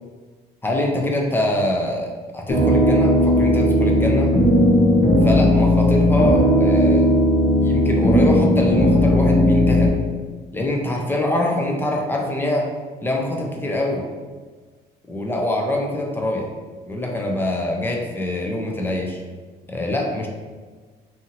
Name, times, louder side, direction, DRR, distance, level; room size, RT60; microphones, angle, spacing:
voice 1, 0.6-4.3 5.2-7.1 7.6-10.0 10.5-12.7 13.0-14.0 15.1-16.5 16.9-19.2 19.7-20.3, left 1 dB, 10° left, 0 dB, 0.5 m, -24 dB
sound 1, 2.5-9.9, equal, 50° left, 0.7 m, -16 dB
2.7 x 2.6 x 2.7 m, 1.4 s
cardioid pair, 110°, 17 cm